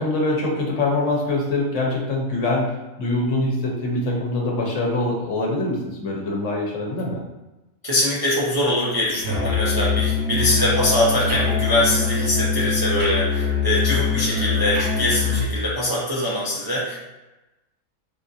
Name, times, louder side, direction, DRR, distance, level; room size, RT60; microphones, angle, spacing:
voice 1, 0.0-7.2, left 2 dB, 70° left, -1 dB, 1.1 m, -24 dB
voice 2, 7.8-17.0, left 1 dB, 35° right, -7 dB, 0.4 m, -23 dB
Musical instrument, 9.2-15.5, left 5 dB, 90° right, 1.5 m, -23 dB
3.4 x 2.5 x 2.7 m, 1.0 s
omnidirectional pair, 1.4 m